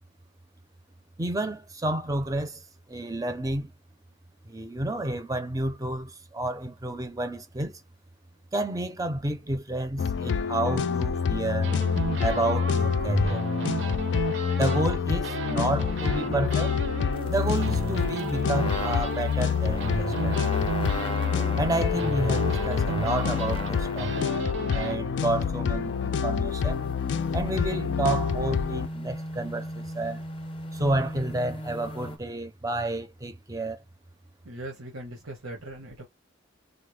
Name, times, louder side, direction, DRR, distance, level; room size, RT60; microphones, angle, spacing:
voice 1, 1.2-2.6 2.9-3.7 4.4-7.8 8.5-11.7 12.2-13.4 14.5-16.8 17.3-20.3 21.6-24.3 24.7-26.8 27.3-30.2 30.7-33.8, right 2 dB, 15° right, 0.5 m, -30 dB
sound 1, 10.0-28.9, left 6 dB, 60° left, 0.3 m, -27 dB
sound 2, 11.6-15.0 15.2-25.0, right 3 dB, 65° right, 0.7 m, -34 dB
sound 3, 17.2-24.4 25.6-32.2, equal, 25° left, 0.7 m, -38 dB
voice 2, 34.4-36.0, right 1 dB, 90° right, 1.2 m, -39 dB
4.1 x 2.1 x 3.3 m
head